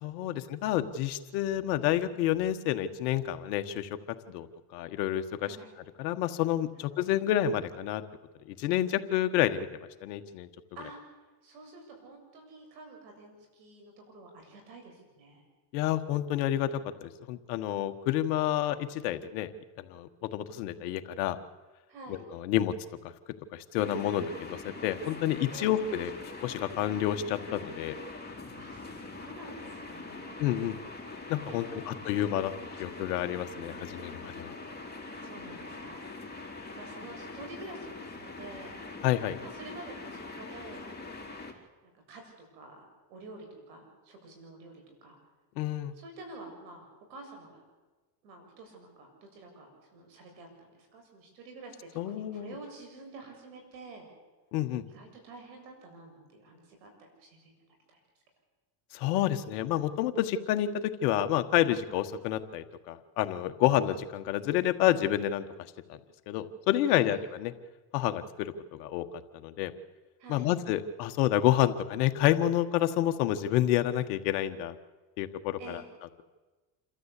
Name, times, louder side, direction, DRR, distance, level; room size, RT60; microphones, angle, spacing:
voice 1, 0.0-3.9 4.3-4.5 4.7-5.6 6.0-8.0 8.5-9.7 10.0-10.5 15.7-16.7 17.0-19.5 19.8-21.4 22.1-22.7 23.5-26.1 26.4-27.9 30.4-30.8 31.3-32.5 32.8-34.5 39.0-39.3 45.6-45.9 52.0-52.5 54.5-54.8 58.9-65.4 65.9-66.0 66.3-67.5 67.9-69.0 69.3-69.7 70.3-74.7 75.2-75.8, left 12 dB, 80° left, 9 dB, 1.6 m, -29 dB
voice 2, 5.4-5.8 6.8-6.9 10.7-11.0 11.4-15.4 21.9-22.2 25.5-25.8 28.5-30.5 31.4-31.9 35.2-38.8 39.4-40.9 41.8-45.2 45.9-47.6 48.2-54.1 54.9-57.5 57.9-58.0 66.9-67.2 70.2-70.5 75.6-76.0, right 3 dB, 85° right, 3 dB, 7.5 m, -49 dB
sound 1, 23.8-41.5, left 3 dB, 20° left, 3.8 m, -43 dB
28.0 x 13.0 x 8.4 m, 1.2 s
supercardioid pair, 90°, 50 cm